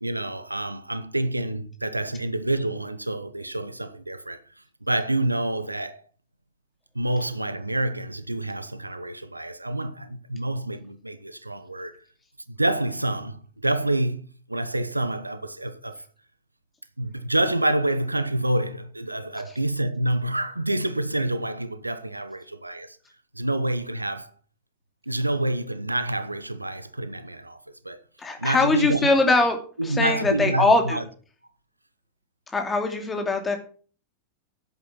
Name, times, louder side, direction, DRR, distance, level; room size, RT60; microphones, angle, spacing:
voice 1, 0.0-4.4 4.8-6.0 6.9-12.0 12.6-16.0 17.0-23.0 23.3-24.3 25.1-27.6 27.8-28.0 28.4-29.1 29.8-31.0, right 1 dB, 85° right, 0.9 m, -27 dB
voice 2, 28.2-29.6 29.8-31.0 32.5-33.6, left 3 dB, 15° left, 2.7 m, -22 dB
10.5 x 8.3 x 6.0 m
figure-of-eight pair, 90°, 0 cm